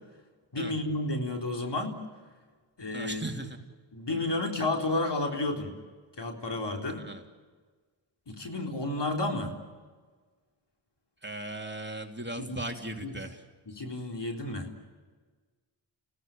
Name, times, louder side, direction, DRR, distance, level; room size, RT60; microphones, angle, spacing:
voice 1, 0.5-2.0 2.8-3.2 3.9-5.8 6.2-7.0 8.3-9.5 12.4-12.6 12.9-13.1 13.7-14.7, left 2 dB, 55° left, 2 dB, 3.9 m, -31 dB
voice 2, 2.9-3.6 4.1-4.3 6.9-7.2 11.2-13.4, right 1 dB, 20° right, 3 dB, 3.0 m, -38 dB
28.5 x 17.5 x 9.0 m, 1.5 s
cardioid pair, 45°, 50 cm